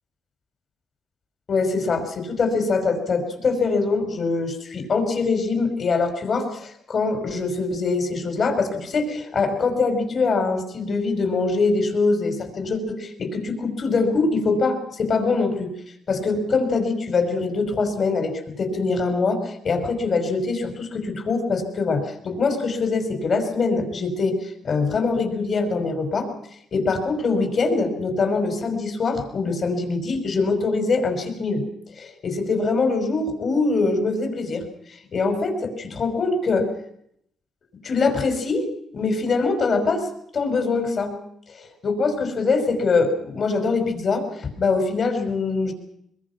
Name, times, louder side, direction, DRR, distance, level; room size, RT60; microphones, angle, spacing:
voice 1, 1.5-15.7 16.1-26.3 26.7-31.6 32.0-34.6 35.1-36.7 37.8-38.7 38.9-40.1 40.3-41.1 41.5-45.7, left 4 dB, 55° left, 5 dB, 5.5 m, -23 dB
23.0 x 22.0 x 6.1 m, 0.73 s
supercardioid pair, 65°, 0 cm